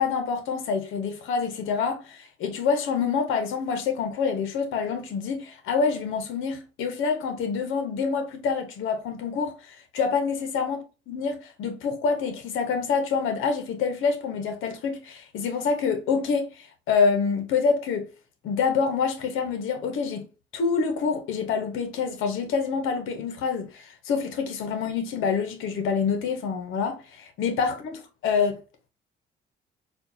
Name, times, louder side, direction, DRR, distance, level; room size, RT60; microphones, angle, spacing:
voice 1, 0.0-10.8 11.1-18.1 18.4-20.3 20.5-28.6, left 5 dB, 90° left, 0.8 m, -26 dB
4.3 x 2.3 x 2.6 m
cardioid pair, 90°, 20 cm